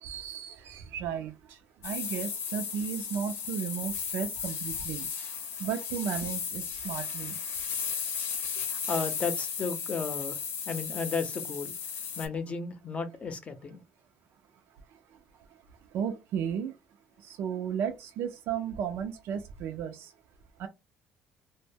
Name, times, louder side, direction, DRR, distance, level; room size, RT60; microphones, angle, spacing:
voice 1, 0.0-1.6 1.8-5.1 5.6-7.4 15.9-16.7 17.2-20.1 20.6-20.7, right 8 dB, 70° right, 0.4 m, -34 dB
sound 1, 1.8-12.3, left 7 dB, 70° left, 0.7 m, -35 dB
voice 2, 8.4-10.4 10.7-11.7 12.2-13.8, left 4 dB, 30° left, 0.6 m, -34 dB
2.1 x 2.0 x 3.4 m
cardioid pair, 110°, 4 cm